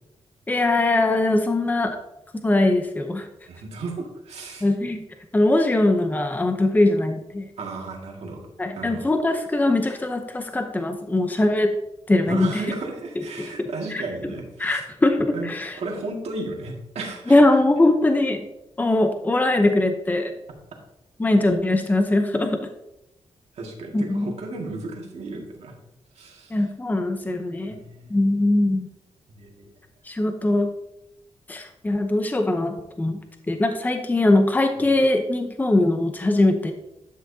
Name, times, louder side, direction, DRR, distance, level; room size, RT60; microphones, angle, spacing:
voice 1, 0.5-2.0 2.4-3.3 4.6-5.0 5.3-7.5 8.6-11.7 12.1-12.6 13.2-14.0 14.6-15.8 17.3-18.4 18.8-20.3 21.2-22.6 23.9-24.3 26.5-27.7 28.1-28.9 30.0-30.7 31.5-33.2 33.5-36.7, left 2 dB, 15° left, 6 dB, 0.7 m, -21 dB
voice 2, 3.5-4.7 7.6-8.4 8.7-9.0 12.2-14.8 15.3-17.4 23.5-25.7 26.1-26.6 27.7-28.2 29.4-29.7 34.8-34.9, right 3 dB, 70° right, 0 dB, 2.0 m, -34 dB
11.5 x 6.1 x 2.8 m, 0.87 s
cardioid pair, 95°, 11 cm